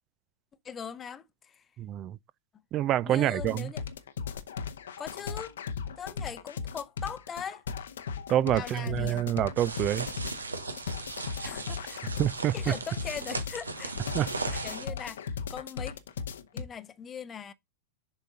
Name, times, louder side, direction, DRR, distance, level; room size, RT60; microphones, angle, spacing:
voice 1, 0.6-1.6 3.0-3.8 5.0-5.6 6.0-7.6 8.5-9.3 11.4-12.1 12.5-13.9 14.5-16.0 16.5-17.5, left 7 dB, 25° left, 0.6 m, -40 dB
voice 2, 1.8-2.2 2.7-3.7 8.3-10.1 12.2-12.7 14.1-14.3, right 12 dB, 35° right, 0.3 m, -27 dB
sound 1, 3.4-16.6, left 6 dB, 70° left, 0.7 m, -37 dB
sound 2, 9.6-14.9, right 3 dB, 85° right, 0.8 m, -37 dB
7.1 x 4.2 x 3.8 m
hypercardioid pair, 95°, 0 cm